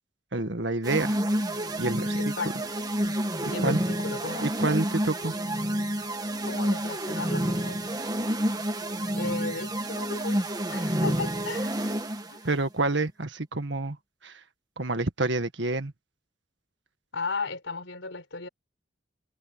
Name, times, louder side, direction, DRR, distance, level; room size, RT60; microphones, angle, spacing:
voice 1, 0.3-1.2 1.8-2.3 3.4-3.8 4.4-5.3 12.4-14.0 14.2-14.4 14.8-15.9, right 2 dB, 70° right, 1.8 m, -28 dB
sound 1, 0.8-12.4, right 1 dB, 20° right, 1.8 m, -29 dB
voice 2, 2.1-2.7 3.5-4.5 6.4-7.9 8.2-8.5 9.2-12.0 12.3-12.4 17.1-18.5, left 3 dB, 90° left, 4.5 m, -36 dB
head